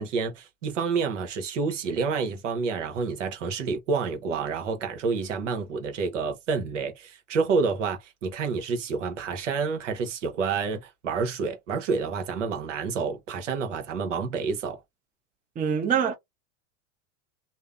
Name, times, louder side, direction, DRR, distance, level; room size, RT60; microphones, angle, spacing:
voice 1, 0.0-14.8, right 5 dB, 85° right, 1.0 m, -29 dB
voice 2, 15.6-16.1, right 7 dB, 20° right, 0.7 m, -24 dB
2.7 x 2.0 x 2.3 m
hypercardioid pair, 120°, 36 cm